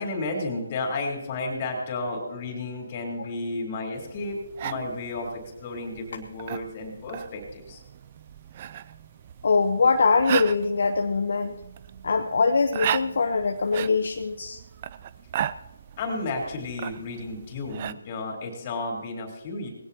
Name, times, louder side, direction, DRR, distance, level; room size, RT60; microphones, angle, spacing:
voice 1, 0.0-7.8 16.0-19.7, left 2 dB, 35° left, 1 dB, 3.7 m, -32 dB
sound 1, 3.9-17.9, right 10 dB, 35° right, 0.4 m, -36 dB
voice 2, 9.4-11.5 12.0-14.6, left 4 dB, 60° left, 5 dB, 0.9 m, -23 dB
19.5 x 16.5 x 2.8 m, 1.0 s
figure-of-eight pair, 150°, 0 cm